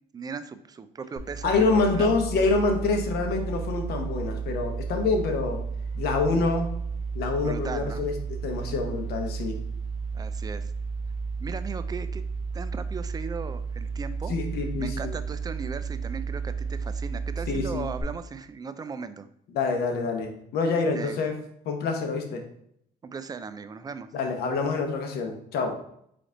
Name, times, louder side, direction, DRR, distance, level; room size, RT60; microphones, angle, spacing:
voice 1, 0.1-2.1 7.4-8.1 10.1-10.7 11.4-12.2 12.5-14.3 14.8-19.3 20.9-21.2 23.0-24.1, right 5 dB, 25° right, 11 dB, 0.3 m, -37 dB
sound 1, 1.2-18.0, right 5 dB, 50° left, 1.2 m, -33 dB
voice 2, 1.4-5.6 5.9-6.7 7.1-9.6 14.3-15.1 17.5-17.9 19.5-21.3 21.7-22.4 24.1-25.8, left 3 dB, 70° left, 4 dB, 0.9 m, -26 dB
3.9 x 3.4 x 3.8 m, 0.71 s
cardioid pair, 110°, 17 cm